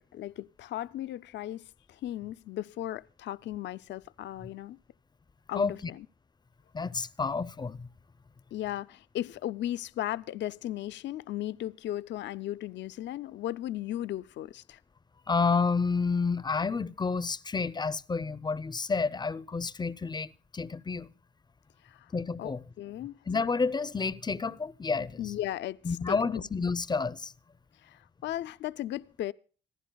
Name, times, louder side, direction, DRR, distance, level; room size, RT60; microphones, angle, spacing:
voice 1, 0.0-4.8 5.5-6.1 8.5-14.8 21.8-22.1 22.4-23.2 25.2-26.4 27.8-29.3, left 13 dB, 65° left, 0.5 m, -36 dB
voice 2, 5.5-5.9 6.7-7.9 15.3-21.1 22.1-22.6 23.3-25.3 25.8-27.3, left 4 dB, 20° left, 0.6 m, -30 dB
26.0 x 11.0 x 2.2 m
cardioid pair, 90°, 20 cm